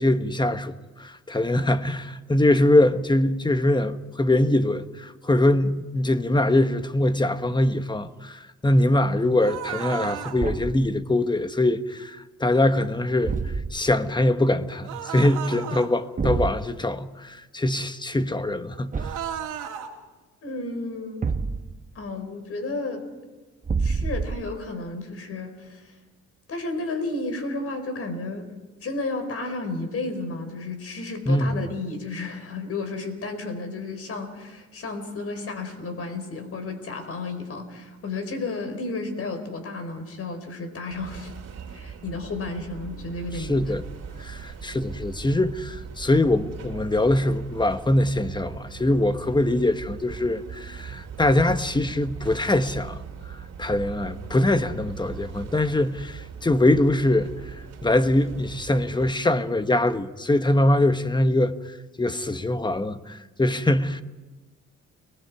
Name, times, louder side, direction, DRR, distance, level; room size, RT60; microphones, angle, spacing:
voice 1, 0.0-19.2 31.3-31.5 43.3-43.8 44.2-53.0 53.3-64.0, left 1 dB, 15° left, 1.1 m, -23 dB
sound 1, 9.4-10.4 14.8-15.9 19.0-19.9, right 9 dB, 90° right, 2.4 m, -33 dB
Thump thud, 10.4-10.9 13.2-13.9 16.2-16.6 18.9-19.4 21.2-21.9 23.6-24.6, right 4 dB, 25° right, 0.9 m, -28 dB
voice 2, 20.4-21.2 21.9-23.1 23.8-25.9 26.5-28.5 28.8-41.3 41.7-43.6, left 3 dB, 50° left, 4.5 m, -32 dB
sound 2, 40.9-59.1, right 7 dB, 55° right, 2.5 m, -40 dB
30.0 x 20.0 x 4.8 m
cardioid pair, 90°, 30 cm